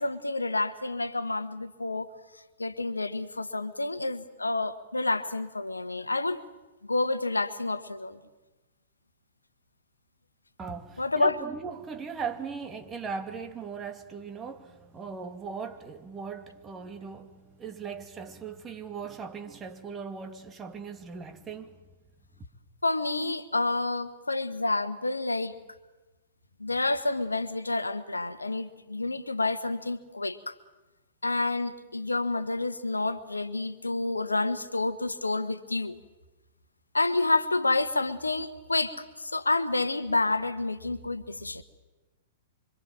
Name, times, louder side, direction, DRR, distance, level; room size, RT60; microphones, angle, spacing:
voice 1, 0.0-2.1 2.6-6.4 6.9-8.2 11.0-11.4 22.8-25.5 26.6-30.5 31.2-36.0 36.9-41.6, left 2 dB, 80° left, 1.4 m, -29 dB
voice 2, 10.6-21.8, right 5 dB, 20° right, 2.5 m, -39 dB
26.0 x 25.5 x 7.6 m
figure-of-eight pair, 105°, 0 cm